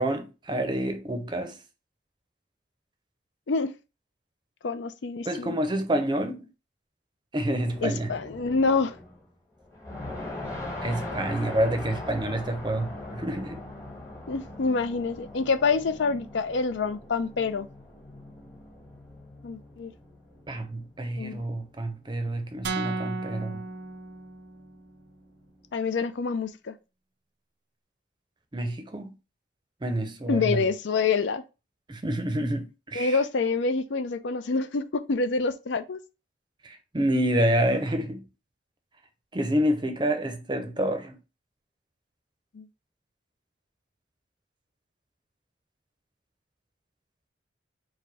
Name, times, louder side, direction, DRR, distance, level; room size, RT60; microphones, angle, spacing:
voice 1, 0.0-1.6 5.3-6.5 7.3-8.1 10.8-13.6 20.5-23.7 28.5-29.2 29.8-30.7 31.9-33.2 36.6-38.2 39.3-41.2, right 1 dB, 25° right, 0.6 m, -28 dB
voice 2, 4.6-5.5 7.8-8.9 14.3-17.7 19.4-19.9 21.2-21.4 25.7-26.7 30.3-31.4 32.9-36.0 42.5-42.6, left 4 dB, 70° left, 0.5 m, -27 dB
sound 1, 7.7-9.3 9.6-26.0, left 1 dB, 15° left, 1.0 m, -42 dB
sound 2, 22.6-24.7, right 3 dB, 65° right, 0.5 m, -33 dB
4.7 x 2.2 x 4.7 m
head